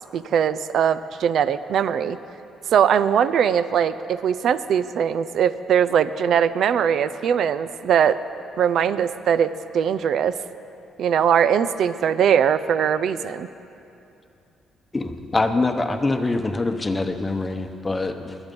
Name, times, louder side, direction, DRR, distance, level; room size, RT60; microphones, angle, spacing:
voice 1, 0.1-2.2 2.7-8.2 8.6-10.4 11.0-13.5, right 8 dB, 70° right, 14 dB, 0.5 m, -21 dB
voice 2, 14.9-18.4, left 2 dB, 20° left, 6 dB, 0.9 m, -24 dB
23.0 x 8.0 x 5.4 m, 2.7 s
cardioid pair, 90°, 0 cm